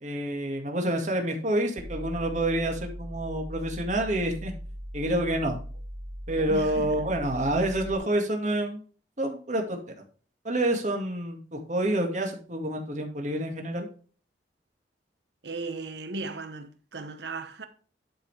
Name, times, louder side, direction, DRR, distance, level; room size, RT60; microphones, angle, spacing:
voice 1, 0.0-4.5 4.9-5.6 6.3-8.8 9.2-9.8 10.4-13.9, right 1 dB, 45° right, 2.1 m, -28 dB
sound 1, 1.8-8.0, equal, 15° right, 2.6 m, -39 dB
voice 2, 6.5-7.1 15.4-17.7, right 3 dB, 75° right, 1.1 m, -37 dB
11.5 x 5.6 x 3.4 m
head